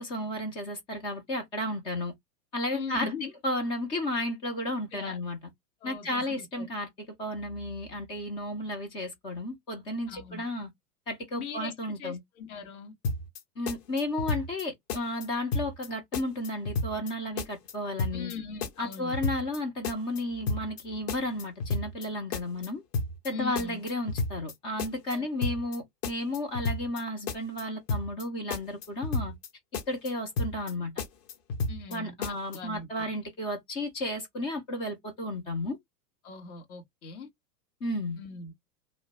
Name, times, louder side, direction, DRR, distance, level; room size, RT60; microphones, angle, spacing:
voice 1, 0.0-2.1 2.5-5.4 5.8-6.9 7.2-10.7 11.1-12.2 13.6-18.3 18.8-22.8 23.2-29.3 29.9-30.9 31.9-35.8 37.8-38.2, left 1 dB, 15° left, 0.3 m, -33 dB
voice 2, 2.7-3.3 4.9-5.2 5.8-6.7 10.1-10.4 11.3-12.9 18.1-19.2 23.3-23.8 25.1-25.3 31.7-33.1 36.2-37.3 38.2-38.5, left 5 dB, 65° left, 1.6 m, -40 dB
sound 1, 13.0-13.4 13.7-14.6 14.9-15.3 15.5-15.9 16.1-17.1 17.4-17.7 18.0-18.3 18.6-19.6 19.8-20.2 20.5-20.8 21.1-22.1 22.3-22.7 22.9-23.3 23.6-24.5 24.8-25.2 25.4-25.8 26.0-27.0 27.3-27.6 27.9-28.2 28.5-29.5 29.7-30.1 30.4-30.7 31.0-32.0 32.2-32.6, left 3 dB, 35° left, 0.8 m, -31 dB
2.9 x 2.2 x 3.9 m
hypercardioid pair, 100°, 48 cm